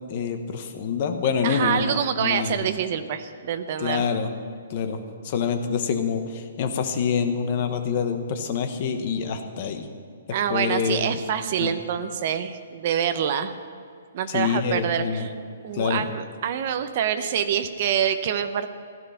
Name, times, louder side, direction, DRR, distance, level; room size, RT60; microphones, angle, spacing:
voice 1, 0.1-2.7 3.8-4.3 4.7-9.9 10.5-11.2 11.6-11.7 14.3-15.3 15.7-16.1, left 6 dB, 30° left, 7 dB, 1.1 m, -26 dB
voice 2, 1.4-4.0 10.3-13.5 14.1-15.3 15.6-18.7, right 8 dB, 30° right, 9 dB, 0.7 m, -26 dB
15.5 x 12.0 x 5.7 m, 2.4 s
hypercardioid pair, 180°, 0 cm